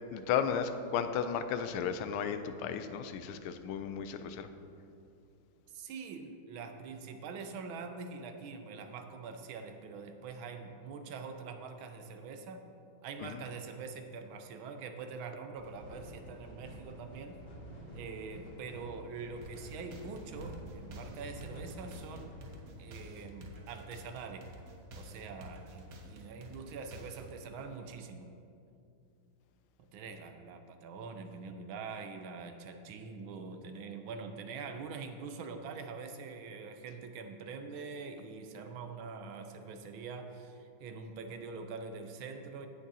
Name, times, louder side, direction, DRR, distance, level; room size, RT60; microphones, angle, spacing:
voice 1, 0.1-4.5 13.2-13.4, left 7 dB, 85° left, 9 dB, 1.5 m, -34 dB
voice 2, 5.7-12.6 13.0-17.4 17.9-22.3 22.8-24.5 24.9-28.3 29.9-42.7, right 4 dB, 80° right, 7 dB, 1.4 m, -44 dB
sound 1, 15.6-22.6, right 1 dB, 55° left, 3.0 m, -49 dB
sound 2, 19.4-27.4, equal, 60° right, 1.0 m, -50 dB
17.0 x 6.2 x 2.7 m, 2.6 s
omnidirectional pair, 2.3 m